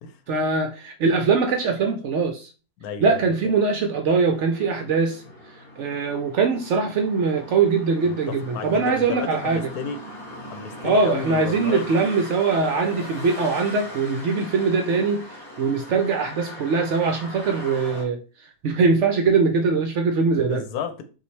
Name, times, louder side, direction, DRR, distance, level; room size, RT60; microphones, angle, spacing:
voice 1, 0.3-2.5 3.0-5.2 5.8-9.7 10.8-15.2 15.6-18.2 18.6-20.6, right 4 dB, 65° right, 0.7 m, -22 dB
voice 2, 2.8-3.5 8.0-10.0 10.4-11.9 20.5-21.0, left 7 dB, 75° left, 1.2 m, -32 dB
sound 1, 4.1-18.0, left 1 dB, ahead, 1.5 m, -40 dB
5.5 x 2.5 x 3.2 m
omnidirectional pair, 1.6 m